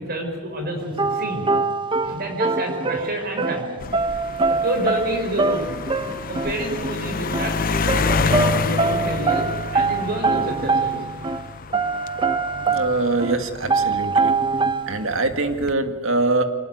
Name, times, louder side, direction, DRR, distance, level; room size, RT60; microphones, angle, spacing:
voice 1, 0.0-1.5 2.0-3.8 4.5-5.8 6.3-11.0, right 1 dB, 45° right, 4 dB, 5.1 m, -28 dB
sound 1, 1.0-11.4 11.7-13.4 13.7-15.1, right 4 dB, 20° right, 0.8 m, -24 dB
sound 2, 3.8-14.5 15.3-15.7, left 4 dB, 40° left, 0.7 m, -28 dB
voice 2, 12.7-14.3 14.9-16.4, right 2 dB, 65° right, 7 dB, 2.1 m, -23 dB
24.5 x 20.5 x 9.2 m, 1.4 s
head